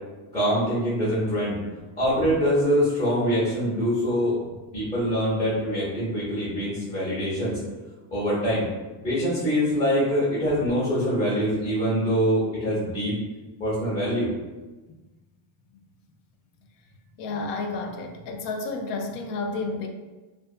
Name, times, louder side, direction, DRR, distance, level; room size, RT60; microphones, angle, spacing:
voice 1, 0.3-1.6 2.0-4.3 4.7-7.6 8.1-8.7 9.0-13.2 13.6-14.3, equal, 15° left, -11 dB, 0.7 m, -24 dB
voice 2, 17.2-19.9, left 3 dB, 85° left, 4 dB, 0.6 m, -31 dB
2.5 x 2.3 x 2.4 m, 1.2 s
cardioid pair, 125°, 49 cm